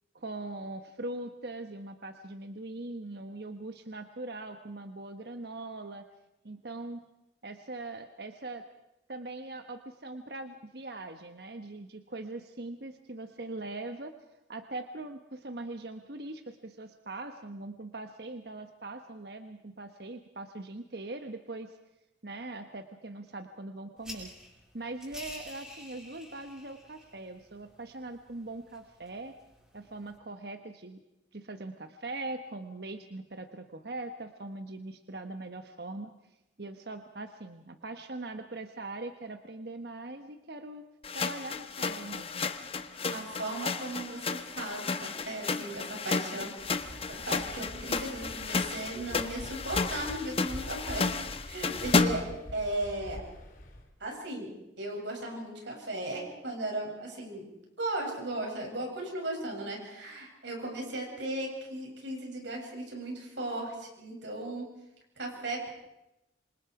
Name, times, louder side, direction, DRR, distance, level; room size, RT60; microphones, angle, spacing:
voice 1, 0.1-6.0 6.4-7.0 7.4-8.6 9.1-14.1 14.5-21.8 22.2-24.3 24.7-29.3 29.7-31.0 31.3-36.1 36.6-40.8 41.1-42.4, right 2 dB, 60° right, 7 dB, 1.1 m, -41 dB
sound 1, 24.0-30.2, left 1 dB, 5° right, 6.8 m, -50 dB
sound 2, 41.0-52.4, left 4 dB, 30° left, 1.0 m, -32 dB
voice 2, 43.1-46.8 47.1-52.2 52.5-53.2 54.0-54.5 54.8-57.5 57.8-64.7 65.2-65.7, right 1 dB, 75° right, 0 dB, 7.7 m, -36 dB
Waves surf, 46.6-53.9, equal, 45° left, 3.1 m, -45 dB
27.0 x 26.0 x 4.9 m, 0.91 s
head